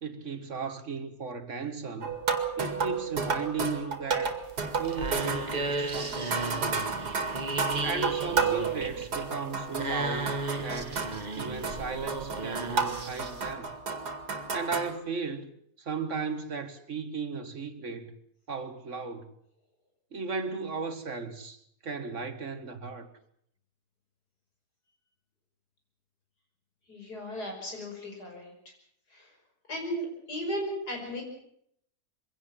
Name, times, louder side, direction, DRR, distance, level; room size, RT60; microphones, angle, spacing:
voice 1, 0.0-2.2 2.6-4.4 4.8-6.8 7.8-11.0 11.4-13.7 14.5-15.5 15.8-18.2 18.5-19.3 20.1-23.1, right 4 dB, 50° right, 1.7 m, -36 dB
sound 1, 2.0-10.0 10.3-14.9, right 5 dB, 85° right, 2.6 m, -32 dB
sound 2, 4.4-13.5, right 3 dB, 30° right, 1.4 m, -35 dB
voice 2, 26.9-28.5 29.1-29.3 29.7-31.2, equal, 85° left, 6.2 m, -35 dB
23.0 x 17.0 x 7.3 m
omnidirectional pair, 1.7 m